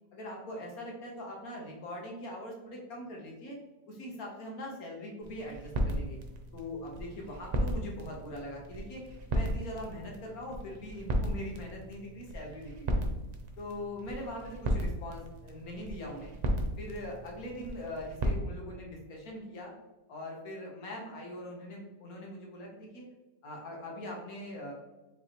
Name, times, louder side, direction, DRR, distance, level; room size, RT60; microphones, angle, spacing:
voice 1, 0.1-3.6 3.9-6.2 6.5-9.0 9.3-13.0 13.6-16.3 16.8-19.7 20.1-23.1 23.4-24.7, left 1 dB, 75° left, 0 dB, 1.5 m, -42 dB
sound 1, 5.2-18.4, right 1 dB, 75° right, 0.3 m, -35 dB
5.1 x 3.4 x 2.9 m, 1.1 s
omnidirectional pair, 1.6 m